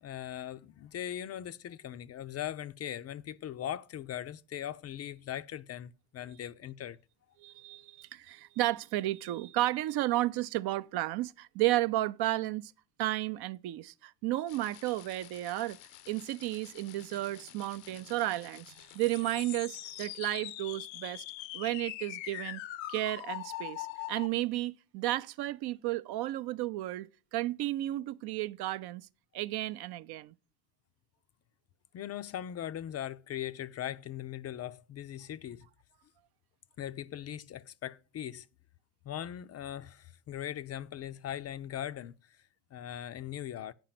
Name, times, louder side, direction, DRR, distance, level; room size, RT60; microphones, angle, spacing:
voice 1, 0.0-7.0 31.9-35.7 36.8-38.5 39.1-42.4 42.7-43.7, left 11 dB, 35° left, 0.4 m, -40 dB
voice 2, 7.4-12.7 13.0-15.8 16.1-21.2 21.5-22.6 22.9-29.1 29.3-30.3, right 16 dB, 60° right, 0.5 m, -33 dB
sound 1, 14.5-24.3, left 17 dB, 75° left, 0.7 m, -44 dB
8.9 x 5.1 x 5.8 m
supercardioid pair, 105°, 45 cm